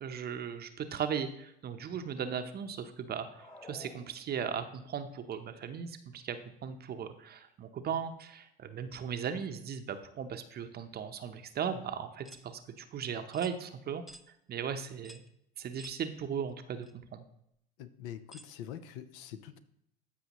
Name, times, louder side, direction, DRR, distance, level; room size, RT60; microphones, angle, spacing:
voice 1, 0.0-14.0 14.5-15.2 15.6-17.2, right 7 dB, 35° right, 8 dB, 0.8 m, -37 dB
sound 1, 3.1-4.7, left 1 dB, 20° left, 1.3 m, -53 dB
sound 2, 12.2-12.5 13.3-13.6 14.1-14.3 15.0-15.3 15.8-16.0 16.8-16.9 18.3-18.5, equal, ahead, 0.4 m, -52 dB
voice 2, 17.8-19.6, left 10 dB, 70° left, 11 dB, 0.8 m, -44 dB
14.5 x 4.9 x 3.0 m, 0.76 s
hypercardioid pair, 95°, 29 cm